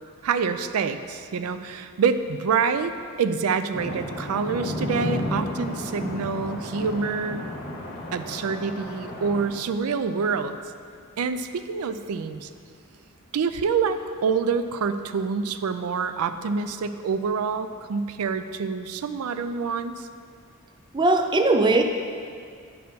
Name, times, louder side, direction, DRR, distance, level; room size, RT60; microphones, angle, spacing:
voice 1, 0.2-2.9 3.2-7.5 8.1-10.6 11.2-12.5 13.3-20.1, right 5 dB, 90° right, 10 dB, 0.4 m, -26 dB
sound 1, 3.7-9.5, left 1 dB, 45° left, 1.4 m, -32 dB
voice 2, 20.9-21.8, right 2 dB, 20° right, 5 dB, 0.4 m, -19 dB
9.8 x 4.3 x 5.5 m, 2.2 s
head